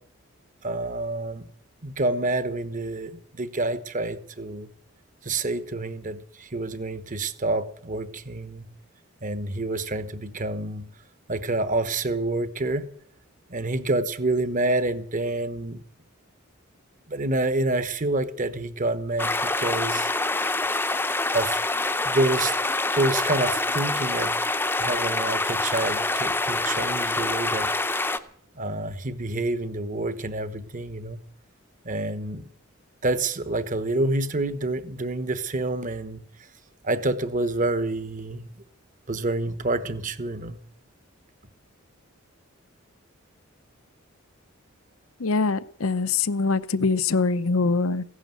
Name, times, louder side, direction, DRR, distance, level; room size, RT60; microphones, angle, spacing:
voice 1, 0.6-1.4 1.8-4.7 5.2-8.7 9.2-10.9 11.3-12.9 13.5-15.8 17.1-20.1 21.3-21.6 22.0-24.4 24.8-27.7 28.6-31.2 31.8-32.5 33.0-36.2 36.8-38.5 39.1-40.6, right 2 dB, 40° right, 1.1 m, -28 dB
sound 1, 19.2-28.2, left 2 dB, 10° left, 0.7 m, -26 dB
voice 2, 45.2-48.0, left 4 dB, 75° left, 0.7 m, -23 dB
16.0 x 11.5 x 7.8 m
head